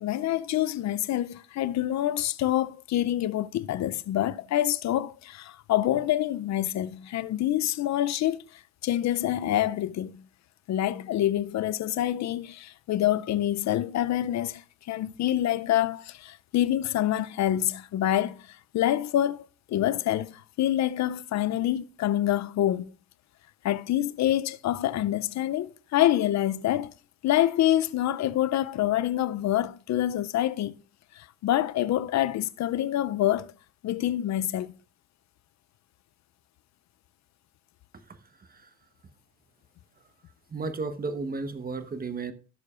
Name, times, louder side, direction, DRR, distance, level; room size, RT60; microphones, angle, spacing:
voice 1, 0.0-8.4 8.8-10.2 10.7-22.9 23.6-26.9 27.2-30.8 31.1-33.5 33.8-34.7, left 13 dB, 65° left, 0.5 m, -26 dB
voice 2, 40.5-42.3, right 4 dB, 30° right, 1.1 m, -33 dB
16.5 x 6.6 x 2.4 m
cardioid pair, 90°, 30 cm